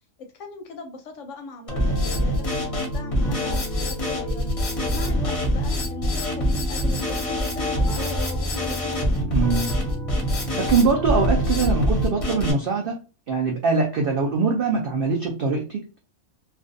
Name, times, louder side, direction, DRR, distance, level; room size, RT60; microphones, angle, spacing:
voice 1, 0.2-4.5 4.9-8.9, left 3 dB, 70° left, 5 dB, 0.8 m, -39 dB
Drum kit, 1.7-12.5, equal, 35° left, 0.6 m, -24 dB
voice 2, 9.3-9.7 10.6-13.0 13.3-16.0, right 4 dB, 75° right, 1 dB, 0.5 m, -22 dB
2.5 x 2.2 x 2.5 m, 0.34 s
omnidirectional pair, 1.5 m